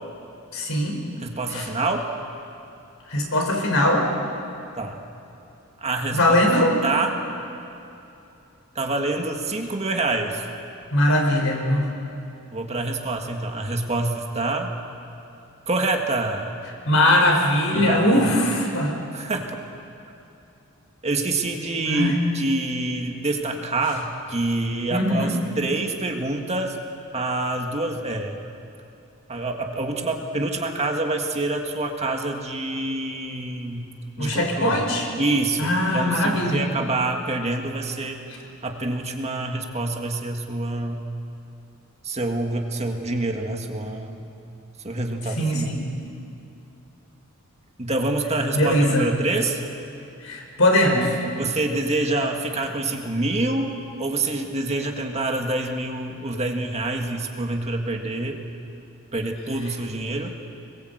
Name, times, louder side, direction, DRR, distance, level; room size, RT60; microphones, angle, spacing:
voice 1, 0.5-1.0 1.5-1.7 3.1-4.1 6.1-6.7 10.9-11.9 16.9-18.9 21.7-22.2 24.9-25.4 34.2-35.1 35.6-36.6 45.4-45.8 48.5-49.1 50.2-51.1, left 1 dB, 70° left, 1 dB, 4.6 m, -20 dB
voice 2, 1.2-2.1 4.8-5.0 5.8-6.2 6.8-7.2 8.8-10.5 12.5-14.7 15.7-16.5 17.7-18.3 19.1-19.6 21.0-26.8 27.1-28.4 29.3-33.9 34.2-34.8 35.2-38.2 38.6-41.1 42.0-44.3 44.8-45.7 47.8-49.6 51.3-58.4 59.1-60.3, right 2 dB, 30° right, 3 dB, 1.9 m, -26 dB
25.0 x 21.5 x 8.1 m, 2.8 s
head